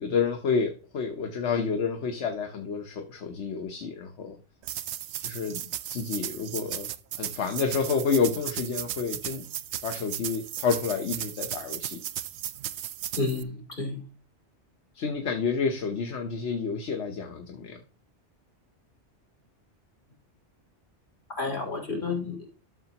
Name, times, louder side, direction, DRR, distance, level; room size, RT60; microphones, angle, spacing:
voice 1, 0.0-4.4 5.2-5.6 5.9-6.9 7.2-9.4 9.8-12.0 14.9-17.8, left 5 dB, 75° left, 4 dB, 1.3 m, -29 dB
sound 1, 4.6-13.4, right 11 dB, 75° right, 0.9 m, -36 dB
voice 2, 13.2-14.0 21.3-22.5, left 3 dB, 45° left, -1 dB, 3.2 m, -31 dB
13.0 x 6.7 x 2.9 m, 0.36 s
omnidirectional pair, 1.2 m